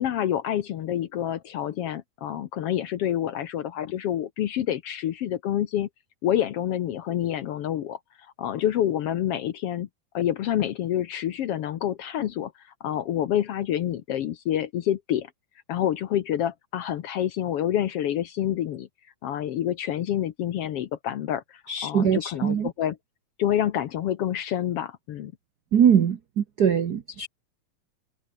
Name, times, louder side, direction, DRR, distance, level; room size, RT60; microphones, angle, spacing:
voice 1, 0.0-5.9 6.2-8.0 8.4-9.9 10.1-12.5 12.8-15.3 15.7-18.9 19.2-23.0 23.4-25.3, left 11 dB, 65° left, 1.6 m, -27 dB
voice 2, 21.7-22.7 25.7-27.3, right 8 dB, 80° right, 0.9 m, -22 dB
omnidirectional pair, 3.5 m